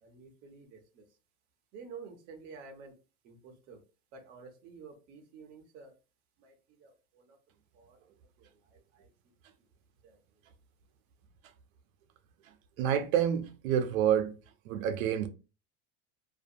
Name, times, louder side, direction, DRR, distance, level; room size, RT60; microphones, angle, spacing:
voice 1, 1.7-2.9 3.7-3.8 4.3-5.9, right 5 dB, 25° right, 0.4 m, -48 dB
voice 2, 12.4-14.4 14.6-15.3, right 9 dB, 80° right, 0.6 m, -28 dB
2.4 x 2.2 x 2.6 m
supercardioid pair, 155°, 40 cm